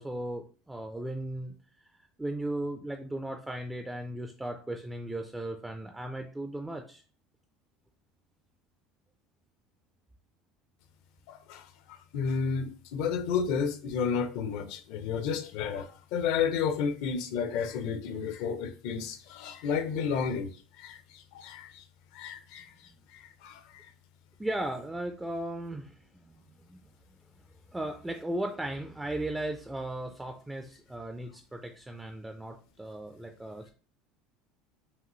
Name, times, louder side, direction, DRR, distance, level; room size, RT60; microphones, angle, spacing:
voice 1, 0.0-1.5 2.2-7.0 24.4-26.8 27.7-33.7, right 1 dB, 5° right, 0.3 m, -36 dB
voice 2, 11.3-21.8 22.1-23.9, left 6 dB, 65° left, 0.6 m, -32 dB
5.0 x 2.7 x 3.0 m
cardioid pair, 165°, 0 cm